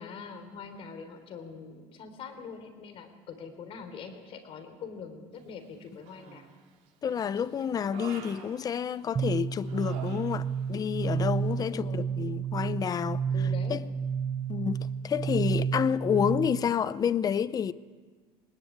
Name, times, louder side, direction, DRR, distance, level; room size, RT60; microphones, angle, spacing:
voice 1, 0.0-6.5 11.6-12.0 13.3-13.7, left 5 dB, 50° left, 3.7 m, -43 dB
Human voice, 6.1-6.7 7.1-9.2 9.6-10.7 11.0-11.3, right 7 dB, 70° right, 3.3 m, -47 dB
voice 2, 7.0-13.2 13.7-13.8 14.5-17.7, left 8 dB, 30° left, 0.7 m, -29 dB
sound 1, 9.2-16.7, right 6 dB, 25° right, 0.6 m, -31 dB
21.0 x 20.5 x 8.8 m
cardioid pair, 130°, 12 cm